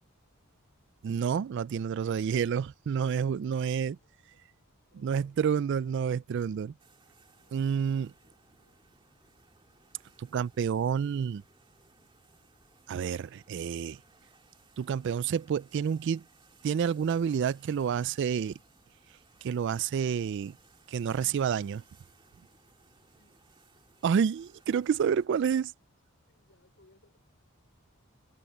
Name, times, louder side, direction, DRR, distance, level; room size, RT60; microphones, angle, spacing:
voice 1, 1.0-4.0 5.0-6.7 7.5-8.1 10.2-11.4 12.9-14.0 14.8-16.2 16.6-18.6 19.4-20.6 20.9-21.8 24.0-25.7, right 7 dB, 55° right, 0.3 m, -29 dB
voice 2, 3.3-5.4 7.3-8.9 23.1-23.5 26.2-27.2, left 2 dB, 55° left, 5.3 m, -68 dB
sound 1, 6.8-25.3, right 4 dB, 25° right, 2.1 m, -63 dB
head